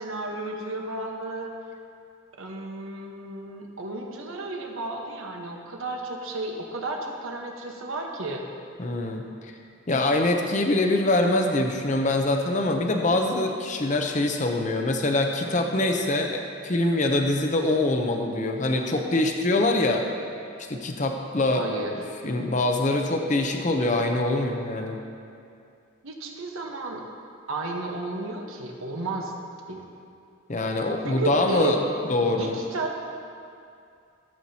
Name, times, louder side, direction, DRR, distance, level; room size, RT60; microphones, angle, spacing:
voice 1, 0.0-1.5 2.4-8.4 21.5-21.9 26.0-27.0 27.5-29.3 29.7-29.8 31.0-31.8 32.1-32.9, right 2 dB, 85° right, 1 dB, 1.2 m, -33 dB
voice 2, 8.8-9.2 9.9-20.0 20.7-21.7 22.2-25.0 30.5-31.8 32.1-32.6, left 2 dB, 35° left, 3 dB, 0.6 m, -24 dB
15.0 x 7.7 x 2.8 m, 2.5 s
head